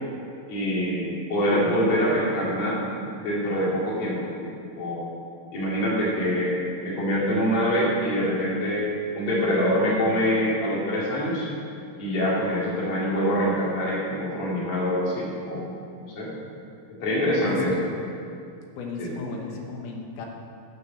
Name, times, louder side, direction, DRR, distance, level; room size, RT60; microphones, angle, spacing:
voice 1, 0.5-2.8 3.2-4.5 4.8-5.1 5.5-8.9 9.1-11.5 12.0-15.6 16.1-16.3 16.9-17.9 19.0-19.1, equal, 40° left, -6 dB, 3.0 m, -25 dB
voice 2, 17.3-17.9 18.7-20.3, left 4 dB, 70° left, 0 dB, 2.8 m, -35 dB
12.5 x 5.4 x 7.3 m, 2.4 s
omnidirectional pair, 4.8 m